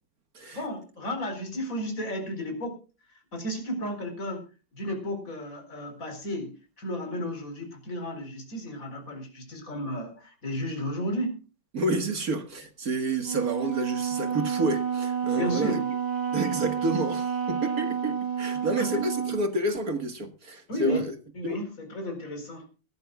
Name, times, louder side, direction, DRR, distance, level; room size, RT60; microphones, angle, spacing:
voice 1, 0.5-2.8 3.3-4.5 4.7-11.5 15.3-15.8 18.8-19.0 20.7-21.0 21.3-22.7, equal, 35° left, 4.7 m, -33 dB
voice 2, 11.7-15.8 16.3-21.1 21.4-21.6, right 2 dB, 45° right, 2.0 m, -29 dB
Wind instrument woodwind instrument, 13.2-19.5, right 8 dB, 65° right, 3.0 m, -30 dB
22.0 x 12.5 x 2.4 m
omnidirectional pair, 2.3 m